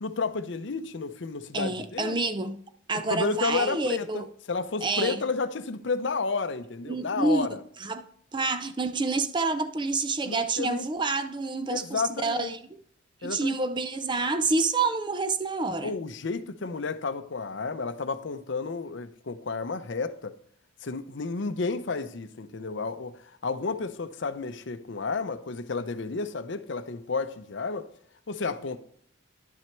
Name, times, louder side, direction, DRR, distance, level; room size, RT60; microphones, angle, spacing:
voice 1, 0.0-2.2 2.9-7.6 10.2-10.9 11.7-12.5 13.2-13.5 15.8-20.3 20.8-27.9 28.3-28.8, left 4 dB, 60° left, 0.6 m, -31 dB
voice 2, 1.5-2.6 2.9-4.3 4.8-5.2 6.9-7.5 7.8-8.0 8.3-12.6 13.2-15.9, right 3 dB, 25° right, 0.5 m, -28 dB
11.0 x 6.0 x 4.5 m
head